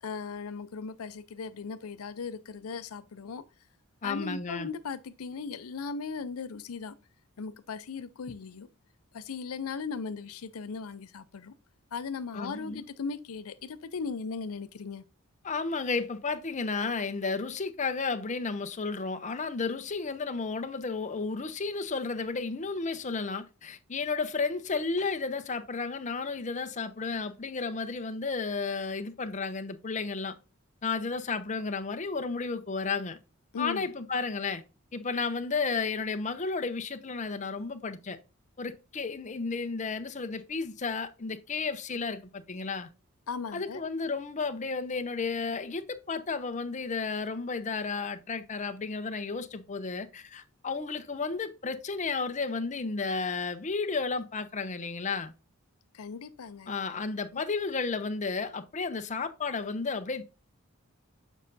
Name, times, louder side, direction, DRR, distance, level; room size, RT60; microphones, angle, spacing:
voice 1, 0.0-3.4 4.0-6.9 7.4-8.7 9.1-11.5 11.9-15.0 33.5-33.9 43.3-43.8 55.9-56.7 57.3-57.4, left 5 dB, 80° left, 0.5 m, -37 dB
voice 2, 4.0-4.7 12.3-12.8 15.4-30.4 30.8-33.2 33.6-34.6 34.9-38.2 38.6-42.9 43.5-55.3 56.7-60.2, left 4 dB, 35° left, 0.6 m, -33 dB
7.2 x 5.5 x 2.6 m
head